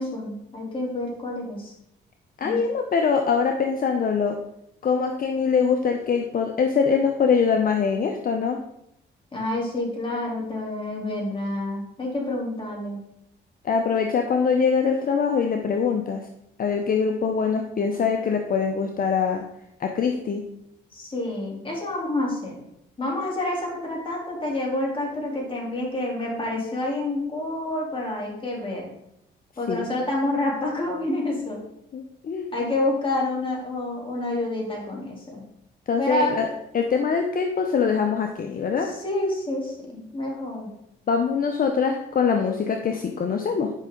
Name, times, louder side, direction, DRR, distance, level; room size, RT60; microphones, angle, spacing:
voice 1, 0.0-1.7 2.4-2.6 9.3-13.0 20.9-22.6 23.0-28.9 29.6-31.6 32.5-35.4 36.0-36.4 38.8-40.7, left 1 dB, 25° left, -2 dB, 3.6 m, -28 dB
voice 2, 2.4-4.4 4.8-8.6 13.6-16.3 16.6-19.4 19.8-20.4 29.7-29.9 31.9-32.5 35.9-36.5 36.7-38.9 41.1-43.7, left 6 dB, 45° left, 4 dB, 0.9 m, -23 dB
10.5 x 5.6 x 3.9 m, 0.78 s
cardioid pair, 90°, 20 cm